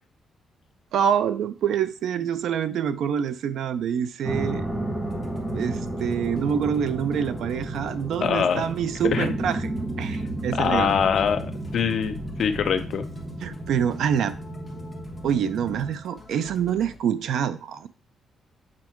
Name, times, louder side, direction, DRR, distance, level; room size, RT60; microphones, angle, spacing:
voice 1, 0.9-4.7 5.5-9.6 10.0-11.1 13.4-14.3 15.2-17.9, right 8 dB, 70° right, 0.6 m, -26 dB
sound 1, 4.2-16.0, right 1 dB, 15° right, 1.6 m, -32 dB
Musical instrument, 5.0-17.0, left 3 dB, 5° left, 1.4 m, -47 dB
voice 2, 8.2-8.7 9.0-9.3 10.5-13.1, left 7 dB, 50° left, 0.8 m, -24 dB
7.5 x 4.7 x 4.5 m
cardioid pair, 165°, 0 cm